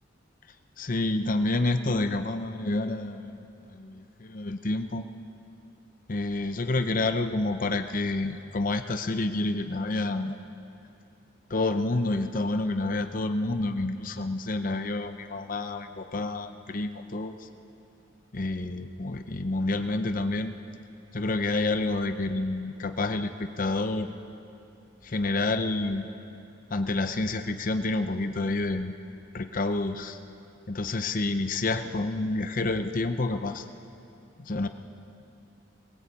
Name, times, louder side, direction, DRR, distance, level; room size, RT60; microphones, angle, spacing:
voice 1, 0.8-5.0 6.1-10.4 11.5-17.5 18.3-20.5 21.1-24.1 25.0-26.1 26.7-28.9 29.3-30.2 30.7-33.7 34.4-34.7, left 2 dB, 40° left, 9 dB, 0.7 m, -29 dB
20.5 x 17.0 x 8.4 m, 2.8 s
head